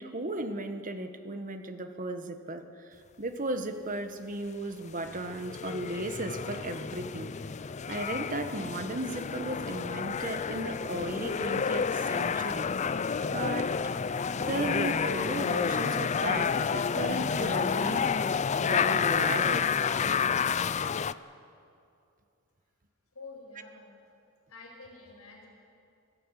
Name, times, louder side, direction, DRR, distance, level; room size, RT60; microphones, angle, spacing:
voice 1, 0.0-7.3 7.9-12.7 13.3-13.8 14.4-18.1 18.6-19.7, right 2 dB, 40° right, 8 dB, 1.3 m, -35 dB
sound 1, 5.0-21.1, left 6 dB, 30° left, 0.4 m, -30 dB
voice 2, 23.1-23.9 24.5-25.5, left 3 dB, 85° left, -1 dB, 5.5 m, -48 dB
26.0 x 15.0 x 8.2 m, 2.5 s
head